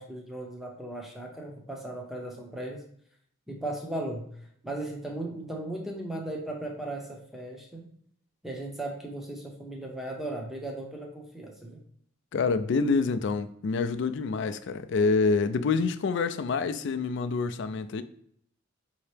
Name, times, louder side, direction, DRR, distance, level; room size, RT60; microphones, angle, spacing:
voice 1, 0.0-2.8 3.5-4.3 4.6-7.9 8.4-11.8, right 1 dB, ahead, 0.7 m, -37 dB
voice 2, 12.3-18.0, left 4 dB, 60° left, 0.3 m, -27 dB
5.4 x 2.8 x 3.3 m
head